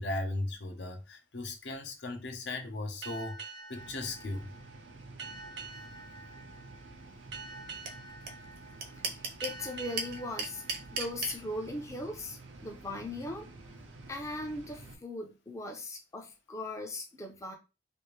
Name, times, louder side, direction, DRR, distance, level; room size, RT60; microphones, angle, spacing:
voice 1, 0.0-4.5, left 2 dB, 65° left, 0.7 m, -37 dB
sound 1, 3.0-12.2, right 3 dB, 75° right, 1.0 m, -48 dB
sound 2, 3.8-14.9, right 2 dB, 90° right, 0.7 m, -51 dB
sound 3, 7.9-8.0 8.3-8.4 8.6-9.6 10.0-11.3, right 4 dB, 55° right, 0.7 m, -33 dB
voice 2, 9.1-10.6 10.9-13.5 14.1-17.5, left 1 dB, 15° left, 0.5 m, -39 dB
3.3 x 2.5 x 3.1 m
head